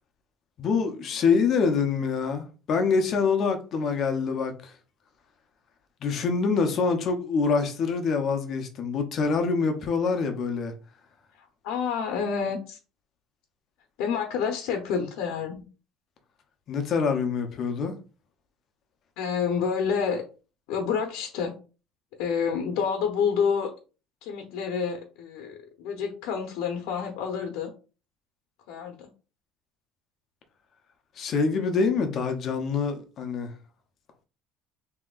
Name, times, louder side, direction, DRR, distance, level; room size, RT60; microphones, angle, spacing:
voice 1, 0.6-4.7 6.0-10.7 16.7-17.9 31.2-33.5, left 5 dB, 35° left, 0.7 m, -25 dB
voice 2, 11.4-12.8 14.0-15.6 19.2-20.2 20.7-21.6 22.2-23.7 24.2-27.7 28.7-29.1, left 6 dB, 75° left, 0.8 m, -28 dB
6.0 x 2.8 x 2.4 m
cardioid pair, 165°, 0 cm